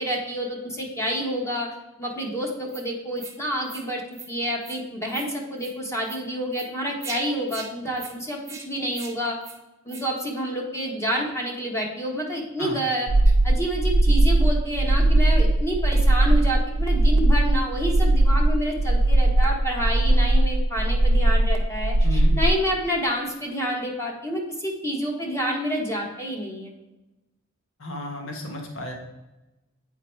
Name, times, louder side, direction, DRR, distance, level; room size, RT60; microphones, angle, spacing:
voice 1, 0.0-1.7 2.0-4.0 4.3-9.4 9.8-13.1 13.4-26.7, equal, 15° left, -1 dB, 1.2 m, -28 dB
sound 1, 2.7-2.8 3.2-3.4 3.6-3.8 4.1-4.3 4.6-4.8 5.1-5.3 5.6-5.7 6.0-6.2 6.5-6.7 7.0-7.2 7.5-7.7 8.0-8.1 8.4-8.6 8.9-9.1 9.4-9.6 9.9-10.0, right 5 dB, 15° right, 0.9 m, -40 dB
sound 2, 13.1-22.5, right 1 dB, 60° right, 0.5 m, -19 dB
voice 2, 27.8-28.9, left 1 dB, 75° left, 1 dB, 1.3 m, -33 dB
8.8 x 3.9 x 4.5 m, 1.0 s
head